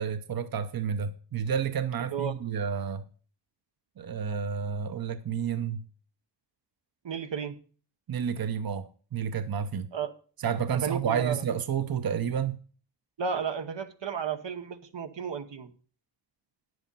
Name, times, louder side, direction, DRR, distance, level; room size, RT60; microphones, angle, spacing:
voice 1, 0.0-3.0 4.0-5.8 8.1-9.9 10.4-12.6, right 7 dB, 55° right, 0.7 m, -30 dB
voice 2, 7.0-7.5 9.9-10.1 10.8-11.4 13.2-15.7, right 6 dB, 85° right, 1.1 m, -33 dB
10.0 x 7.9 x 5.4 m
wide cardioid pair, 110°, 42 cm